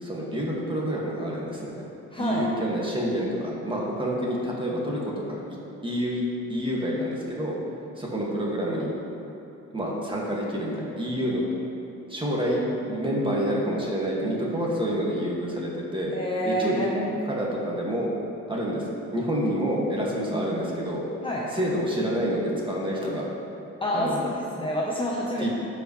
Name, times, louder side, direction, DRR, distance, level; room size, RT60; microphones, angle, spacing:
voice 1, 0.0-1.7 2.2-5.0 5.3-5.4 5.8-6.2 6.5-7.6 7.9-8.9 9.7-11.4 12.1-16.1 16.5-18.1 18.5-18.8 19.1-21.0 21.5-23.3 23.9-24.2 25.4-25.5, equal, 15° right, -4 dB, 2.0 m, -28 dB
voice 2, 2.1-2.5 16.1-16.9 21.2-21.4 23.8-25.5, equal, 15° left, -4 dB, 0.9 m, -28 dB
14.5 x 5.1 x 3.2 m, 2.8 s
cardioid pair, 90°, 30 cm